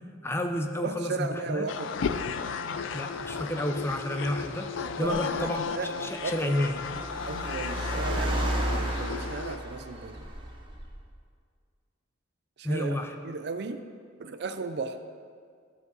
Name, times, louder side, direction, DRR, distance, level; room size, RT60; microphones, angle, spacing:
voice 1, 0.2-1.7 2.9-4.7 5.0-5.6 6.0-6.7 12.6-13.1, left 1 dB, 10° left, 6 dB, 0.4 m, -30 dB
voice 2, 0.8-2.0 5.0-5.9 6.2-6.7 7.3-10.3 12.6-13.0 13.2-13.9 14.2-15.0, right 3 dB, 55° right, 9 dB, 0.4 m, -35 dB
sound 1, 1.7-9.6, left 5 dB, 75° left, 0.4 m, -34 dB
Car, 3.2-11.1, right 1 dB, 25° right, 0.9 m, -34 dB
13.5 x 5.4 x 4.0 m, 2.1 s
head